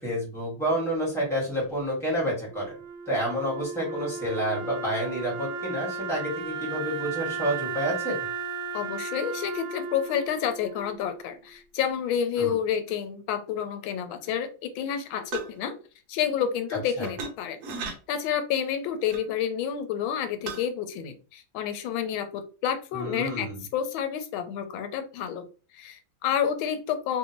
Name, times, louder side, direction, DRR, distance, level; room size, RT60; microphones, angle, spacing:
voice 1, 0.0-2.7 3.1-8.2 12.4-12.5 17.0-17.1 22.9-23.6, right 1 dB, ahead, -4 dB, 1.2 m, -29 dB
Wind instrument woodwind instrument, 2.5-11.6, right 4 dB, 80° right, 1.4 m, -35 dB
voice 2, 8.7-15.8 16.1-25.5 25.7-27.2, left 8 dB, 90° left, 8 dB, 1.4 m, -29 dB
sound 1, 15.3-15.6 17.0-17.3 17.6-17.9 19.1-19.2 20.5-20.6, right 5 dB, 65° right, 1.1 m, -34 dB
3.3 x 2.6 x 2.8 m, 0.36 s
omnidirectional pair, 2.1 m